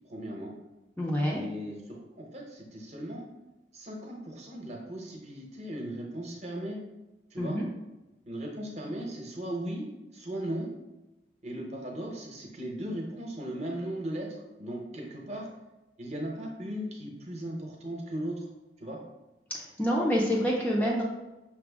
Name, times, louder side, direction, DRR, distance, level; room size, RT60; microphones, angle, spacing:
voice 1, 0.0-0.5 1.3-3.2 3.7-6.8 7.3-7.6 8.2-9.8 10.1-10.7 11.4-14.3 14.6-15.5 16.0-18.5 18.8-19.0, right 1 dB, 35° right, -1 dB, 0.8 m, -37 dB
voice 2, 1.0-1.5 7.4-7.7 19.5-21.0, equal, 10° left, -3 dB, 0.4 m, -27 dB
5.9 x 2.0 x 3.4 m, 1.0 s
head